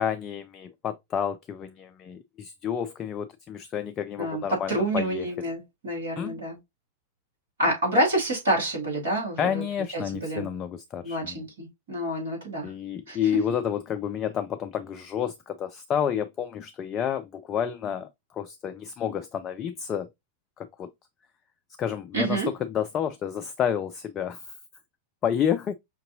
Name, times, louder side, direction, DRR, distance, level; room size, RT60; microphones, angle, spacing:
voice 1, 0.0-5.3 6.2-6.4 9.4-11.4 12.6-20.1 20.6-20.9 21.8-22.4 22.7-24.4 25.2-25.7, left 8 dB, 30° left, 0.3 m, -30 dB
voice 2, 4.2-6.6 7.6-9.6 9.9-10.5 11.0-12.7 13.1-13.4 22.1-22.5, right 1 dB, 65° right, 2.3 m, -28 dB
5.1 x 2.6 x 2.5 m
figure-of-eight pair, 90°, 0 cm